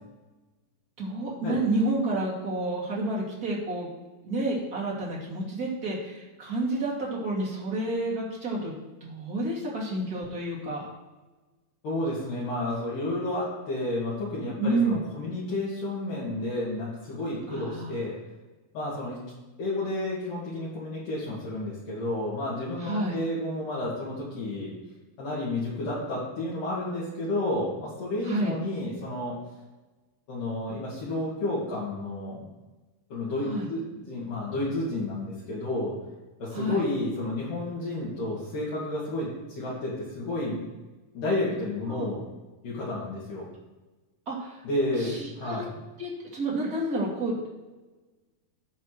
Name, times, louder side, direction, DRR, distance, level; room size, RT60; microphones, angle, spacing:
voice 1, 1.0-3.9 4.2-8.7 9.0-10.9 14.6-15.0 17.5-17.9 22.8-23.2 28.2-28.5 33.5-33.7 36.5-36.8 41.9-42.1 44.3-44.6 45.0-45.6 46.0-47.3, right 2 dB, 30° right, -5 dB, 1.9 m, -29 dB
voice 2, 11.8-18.2 18.7-19.2 19.6-24.7 25.2-29.3 30.3-32.4 33.1-35.9 36.4-40.6 41.1-42.2 42.6-43.5 44.6-45.7, left 2 dB, 60° left, -7 dB, 3.3 m, -31 dB
17.0 x 5.8 x 3.1 m, 1.2 s
omnidirectional pair, 4.5 m